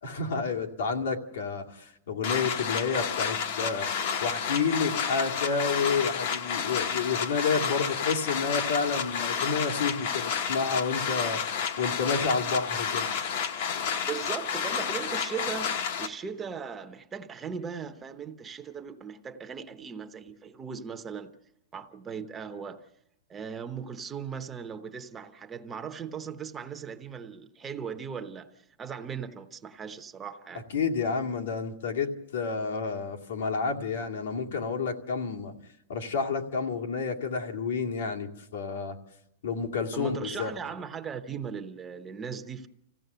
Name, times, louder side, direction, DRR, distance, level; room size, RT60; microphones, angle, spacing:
voice 1, 0.0-3.9 4.2-11.4 11.8-13.1 30.7-35.6 35.9-39.0 39.4-40.5, left 5 dB, 85° left, 2.2 m, -30 dB
sound 1, 2.2-16.1, left 7 dB, 50° left, 1.0 m, -30 dB
voice 2, 14.0-21.3 21.7-22.9 23.3-30.6 39.9-42.7, right 6 dB, 15° right, 0.8 m, -38 dB
26.0 x 16.0 x 6.8 m
supercardioid pair, 170°, 0 cm